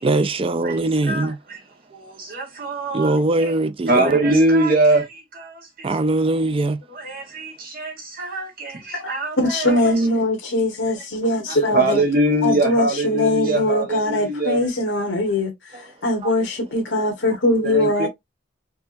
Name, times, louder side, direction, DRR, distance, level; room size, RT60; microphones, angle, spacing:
voice 1, 0.0-1.4 2.9-4.3 5.8-6.8 15.7-15.8 16.2-16.3, right 2 dB, 30° right, 0.4 m, -21 dB
voice 2, 1.1-1.6 1.9-3.1 3.9-5.9 6.9-9.8 11.5-14.6 17.6-18.1, right 1 dB, 50° right, 1.1 m, -22 dB
voice 3, 9.0-12.0 12.4-18.1, left 1 dB, 70° left, 1.1 m, -21 dB
4.5 x 2.8 x 2.5 m
head